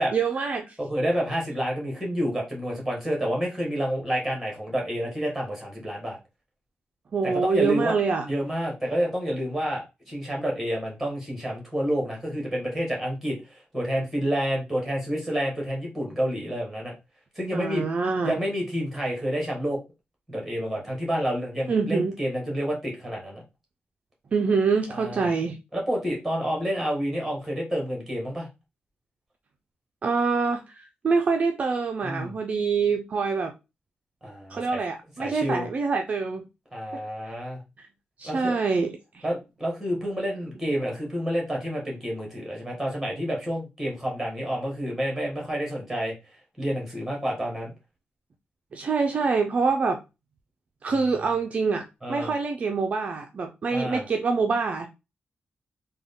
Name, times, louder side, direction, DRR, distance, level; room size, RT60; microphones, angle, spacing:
voice 1, 0.1-0.7 7.1-8.3 17.5-18.4 21.7-22.2 24.3-25.6 30.0-33.5 34.5-36.5 36.9-37.3 37.8-37.9 38.2-39.2 48.7-50.0 50.8-54.9, right 4 dB, 40° right, 0.3 m, -25 dB
voice 2, 0.8-6.2 7.2-8.0 8.2-16.9 17.3-17.9 18.2-19.8 20.3-23.4 24.9-25.3 25.7-28.5 32.0-32.3 34.2-34.8 35.2-35.7 36.7-37.6 38.2-38.6 39.2-46.1 46.6-47.7 52.0-52.3 53.7-54.0, equal, ahead, 1.4 m, -29 dB
3.6 x 2.2 x 3.5 m
wide cardioid pair, 180°, 4 cm